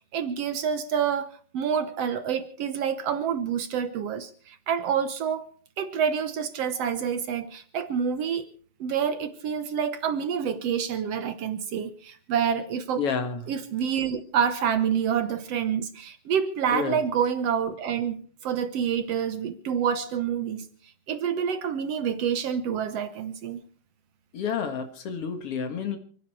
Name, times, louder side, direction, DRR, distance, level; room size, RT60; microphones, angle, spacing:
voice 1, 0.1-5.5 5.8-8.5 8.8-13.0 13.5-20.7 21.1-23.6, right 7 dB, 70° right, 10 dB, 1.5 m, -27 dB
voice 2, 13.0-13.4 16.7-17.0 24.3-26.0, left 6 dB, 50° left, 8 dB, 2.0 m, -29 dB
29.0 x 9.9 x 4.6 m, 0.43 s
omnidirectional pair, 4.1 m